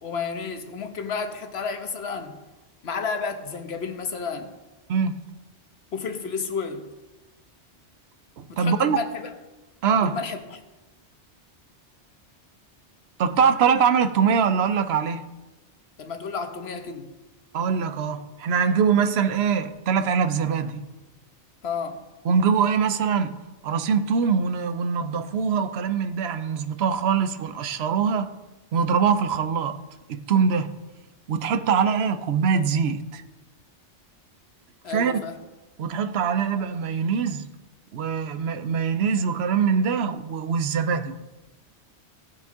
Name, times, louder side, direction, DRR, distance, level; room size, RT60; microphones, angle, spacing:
voice 1, 0.0-2.3 2.8-4.5 5.9-6.8 8.5-9.3 10.0-10.6 16.0-17.1 21.6-22.0 34.8-35.3, left 5 dB, 65° left, 1.3 m, -31 dB
voice 2, 4.9-5.2 8.4-9.0 9.8-10.2 13.2-15.2 17.5-20.8 22.2-28.3 28.7-29.8 30.1-30.7 31.3-33.2 34.9-35.1 35.8-37.5 37.9-41.2, right 6 dB, 70° right, 0.9 m, -23 dB
17.5 x 6.4 x 3.8 m
omnidirectional pair, 1.2 m